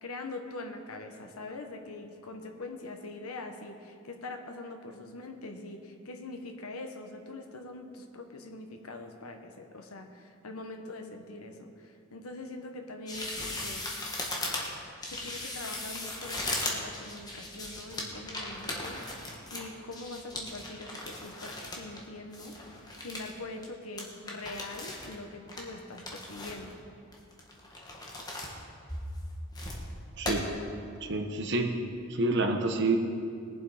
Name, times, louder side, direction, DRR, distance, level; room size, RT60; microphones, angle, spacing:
voice 1, 0.0-13.9 15.1-22.6 23.0-26.8, left 2 dB, 90° left, 5 dB, 1.1 m, -43 dB
sound 1, 13.1-22.0 22.3-23.3 23.6-23.7 24.0-25.1 25.5-26.7 27.1-28.5 28.9-29.8 30.2-30.3, left 2 dB, 20° left, 1.6 m, -38 dB
voice 2, 30.2-30.5 31.0-31.7 32.1-33.0, right 2 dB, 55° right, 4 dB, 1.1 m, -28 dB
20.0 x 7.6 x 5.0 m, 2.4 s
head